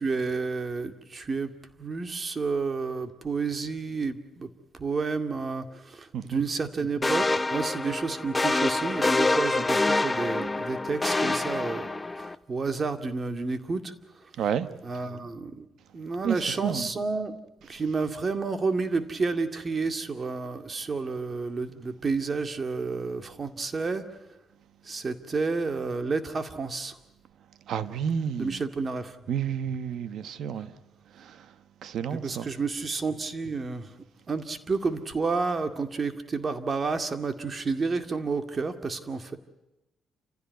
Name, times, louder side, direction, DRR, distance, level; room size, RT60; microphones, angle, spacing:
voice 1, 0.0-1.5 1.8-4.5 4.8-12.0 12.5-13.9 14.8-15.7 15.9-17.4 17.7-24.1 24.9-26.9 28.4-29.1 32.1-33.9 34.3-39.4, right 4 dB, 35° right, 2.2 m, -30 dB
sound 1, 7.0-12.3, left 2 dB, 15° left, 0.8 m, -26 dB
voice 2, 14.4-14.7 16.2-16.9 27.7-28.6 29.3-30.7 31.2-31.4 31.8-32.5, right 8 dB, 70° right, 1.2 m, -30 dB
29.0 x 16.0 x 9.5 m
cardioid pair, 90°, 0 cm